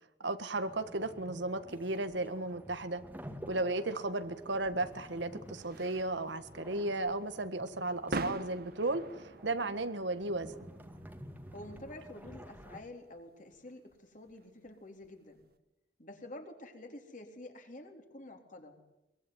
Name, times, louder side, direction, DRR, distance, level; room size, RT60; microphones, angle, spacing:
voice 1, 0.2-3.0 3.5-9.0 9.4-10.5, right 2 dB, 75° right, 11 dB, 1.7 m, -34 dB
sound 1, 0.5-12.8, equal, 10° right, 2.1 m, -51 dB
sound 2, 4.2-15.5, right 2 dB, 55° right, 1.6 m, -46 dB
voice 2, 11.5-15.4 16.0-18.8, left 1 dB, 45° left, 4 dB, 3.9 m, -49 dB
23.0 x 22.0 x 9.6 m, 0.92 s
head